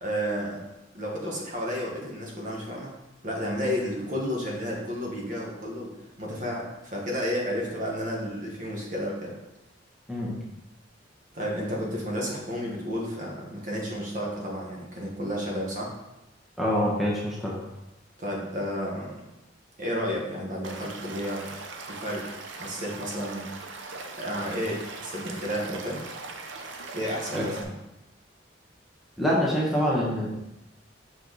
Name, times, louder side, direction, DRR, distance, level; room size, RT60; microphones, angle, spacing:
voice 1, 0.0-0.6 0.9-2.9 3.2-9.4 11.3-15.9 18.2-19.2 19.8-21.4 21.8-23.8 24.2-26.0 26.9-27.7, equal, 45° right, -2 dB, 1.5 m, -32 dB
voice 2, 16.6-17.5 27.3-27.4 29.2-30.3, equal, ahead, -6 dB, 1.2 m, -25 dB
Stream / Liquid, 20.6-27.6, right 3 dB, 75° right, 0.8 m, -40 dB
6.5 x 4.4 x 4.0 m, 0.93 s
head